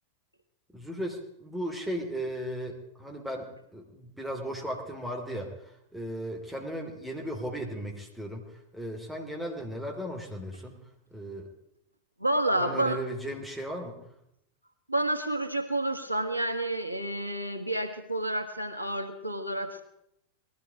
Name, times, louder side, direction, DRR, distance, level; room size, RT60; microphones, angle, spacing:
voice 1, 0.7-8.5 8.7-10.8 11.1-11.5 12.5-14.0, equal, 5° right, 0 dB, 3.1 m, -36 dB
voice 2, 12.2-13.0 14.9-19.8, right 1 dB, 90° left, 7 dB, 1.5 m, -29 dB
19.5 x 13.0 x 5.0 m, 0.79 s
figure-of-eight pair, 90°, 0 cm